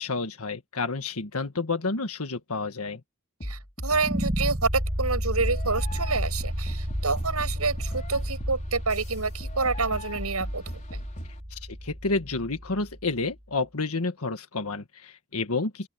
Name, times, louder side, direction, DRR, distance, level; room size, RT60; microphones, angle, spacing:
voice 1, 0.0-3.0 11.5-15.9, left 3 dB, 80° left, 1.7 m, -30 dB
sound 1, 3.4-4.7 5.4-11.4, equal, 35° left, 4.3 m, -36 dB
voice 2, 3.4-11.0, right 4 dB, 90° right, 7.1 m, -28 dB
sound 2, 4.0-13.0, equal, 30° right, 3.9 m, -32 dB
open air
head